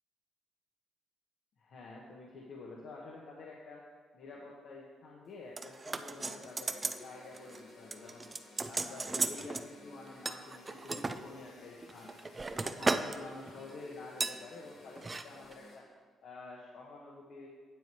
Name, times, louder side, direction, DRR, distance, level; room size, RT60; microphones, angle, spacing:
voice 1, 1.6-3.8 4.1-8.3 8.6-12.1 12.5-15.8 16.2-17.5, left 3 dB, 65° left, -3 dB, 1.4 m, -49 dB
sound 1, 5.6-7.0 7.3-7.6 7.9-9.7 10.3-11.2 11.8-13.2 13.5-13.7 14.2-14.4 15.0-15.2 15.5-15.6, right 3 dB, 25° right, 0.5 m, -35 dB
sound 2, 6.1-15.8, left 2 dB, 85° left, 2.5 m, -56 dB
9.2 x 7.3 x 4.7 m, 1.5 s
cardioid pair, 90°, 0 cm